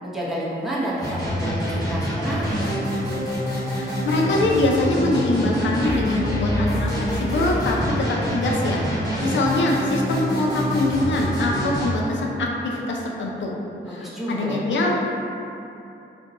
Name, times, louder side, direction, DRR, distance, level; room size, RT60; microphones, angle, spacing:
voice 1, 0.0-2.6 13.8-14.6, right 1 dB, ahead, -8 dB, 0.7 m, -29 dB
sound 1, 1.0-11.9, equal, 20° left, 1.1 m, -26 dB
voice 2, 3.8-8.9 9.2-13.5 13.9-14.9, left 2 dB, 70° left, -1 dB, 0.5 m, -23 dB
2.5 x 2.2 x 3.9 m, 2.7 s
cardioid pair, 90°, 20 cm